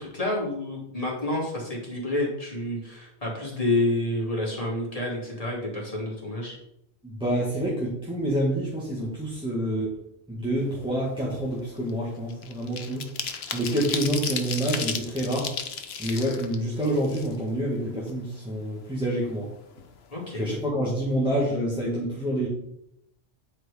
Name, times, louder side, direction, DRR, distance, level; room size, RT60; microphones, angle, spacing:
voice 1, 0.0-6.6 20.1-20.4, left 1 dB, 30° left, -3 dB, 2.7 m, -29 dB
voice 2, 7.0-9.9 10.3-13.1 13.5-15.5 16.0-19.5 20.3-22.5, right 1 dB, 5° right, -6 dB, 1.7 m, -27 dB
sound 1, 10.7-10.9 11.3-17.7 18.1-18.2 18.5-19.5 19.8-19.9 20.2-20.5, left 6 dB, 65° left, 1.1 m, -34 dB
9.8 x 4.7 x 4.9 m, 0.77 s
omnidirectional pair, 1.2 m